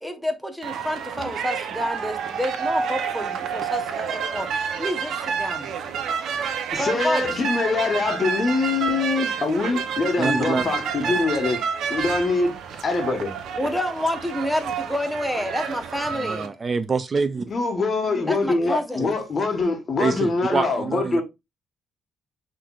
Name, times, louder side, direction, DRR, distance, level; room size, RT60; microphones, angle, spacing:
voice 1, 0.0-5.7 6.8-7.4 13.5-16.5 18.3-19.1, equal, ahead, 0.9 m, -29 dB
sound 1, 0.6-16.5, right 6 dB, 75° right, 0.6 m, -29 dB
voice 2, 6.7-11.6 11.9-12.5 12.8-13.3 17.5-21.2, left 3 dB, 40° left, 1.2 m, -24 dB
voice 3, 10.2-10.8 16.2-17.5 19.0-19.1 20.0-21.2, right 4 dB, 35° right, 0.4 m, -26 dB
5.8 x 3.2 x 2.3 m
cardioid pair, 90°, 0 cm